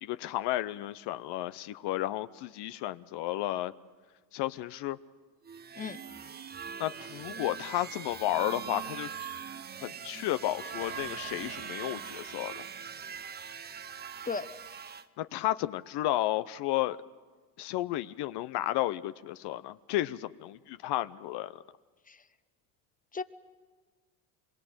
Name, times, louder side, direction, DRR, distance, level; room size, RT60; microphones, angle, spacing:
voice 1, 0.0-3.7 4.3-5.0 6.8-9.3 9.8-12.6 15.2-17.0 17.6-21.6, left 15 dB, 55° left, 14 dB, 0.8 m, -32 dB
sound 1, 5.4-15.0, right 7 dB, 20° right, 0.8 m, -42 dB
voice 2, 5.7-6.0 14.2-14.5 22.1-22.2 23.1-23.2, left 5 dB, 15° left, 12 dB, 1.0 m, -35 dB
sound 2, 10.8-14.0, right 12 dB, 50° right, 0.9 m, -49 dB
26.0 x 22.5 x 8.0 m, 1.4 s
supercardioid pair, 90°, 47 cm